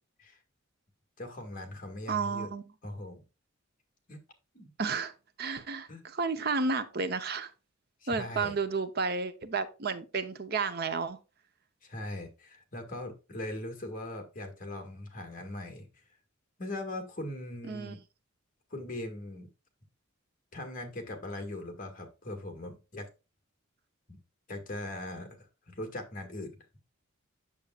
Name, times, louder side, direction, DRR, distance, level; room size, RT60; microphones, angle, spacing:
voice 1, 1.2-2.5 2.8-3.2 4.1-4.2 4.5-4.7 5.9-6.0 8.0-8.5 11.8-15.9 16.6-18.0 18.7-19.5 20.5-23.1 24.1-24.2 24.5-26.6, left 1 dB, 40° left, 1.9 m, -40 dB
voice 2, 2.1-2.7 4.8-5.1 5.4-7.5 8.1-11.2 17.7-17.9, right 4 dB, 50° right, 0.7 m, -32 dB
8.5 x 7.0 x 2.4 m
head